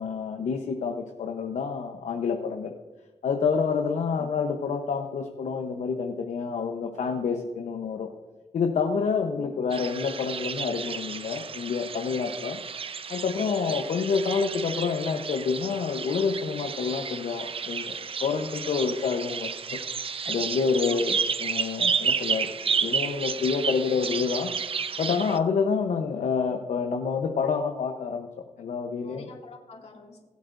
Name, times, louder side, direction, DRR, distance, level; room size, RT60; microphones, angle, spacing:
voice 1, 0.0-2.7 3.2-8.1 8.5-12.6 13.1-19.6 19.9-24.5 25.0-28.3 28.6-29.3, left 5 dB, 75° left, 2 dB, 1.0 m, -28 dB
sound 1, 9.7-25.4, right 6 dB, 45° right, 0.6 m, -31 dB
voice 2, 20.9-21.2 29.0-30.2, left 4 dB, 55° left, 0 dB, 2.5 m, -48 dB
20.5 x 8.3 x 2.6 m, 1.2 s
cardioid pair, 75°, 13 cm